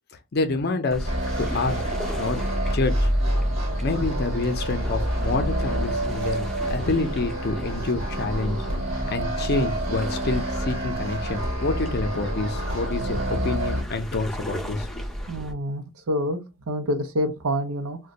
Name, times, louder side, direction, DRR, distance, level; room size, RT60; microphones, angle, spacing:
voice 1, 0.3-1.1 1.4-1.8 2.2-3.1 3.8-8.6 9.1-15.1, left 3 dB, 50° left, 0.5 m, -27 dB
sound 1, 0.9-15.5, equal, ahead, 0.5 m, -30 dB
sound 2, 1.0-13.8, right 1 dB, 60° right, 1.1 m, -30 dB
voice 2, 15.3-18.0, equal, 80° right, 0.6 m, -27 dB
2.5 x 2.2 x 3.9 m
head